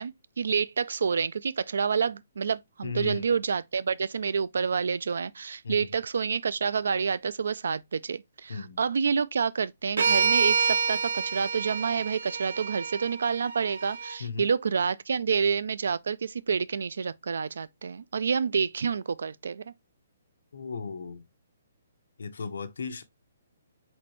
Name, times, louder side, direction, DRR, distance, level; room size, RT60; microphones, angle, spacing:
voice 1, 0.0-19.7, right 6 dB, 70° right, 0.3 m, -28 dB
voice 2, 2.8-3.2 5.6-5.8 8.5-8.8 14.2-14.5 20.5-21.2 22.2-23.0, left 5 dB, 70° left, 0.7 m, -35 dB
sound 1, 10.0-14.1, right 5 dB, 90° right, 0.8 m, -28 dB
4.2 x 3.2 x 3.0 m
hypercardioid pair, 180°, 0 cm